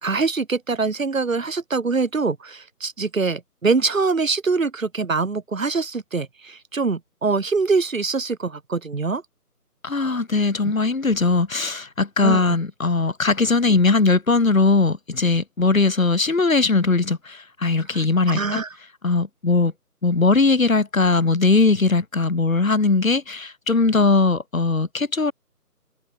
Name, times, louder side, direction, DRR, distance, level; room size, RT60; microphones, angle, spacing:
voice 1, 0.0-9.2 12.2-12.4 17.9-18.7, right 4 dB, 55° right, 2.0 m, -24 dB
voice 2, 9.8-18.6 19.0-19.7 20.0-25.3, left 3 dB, 60° left, 4.4 m, -20 dB
figure-of-eight pair, 165°, 47 cm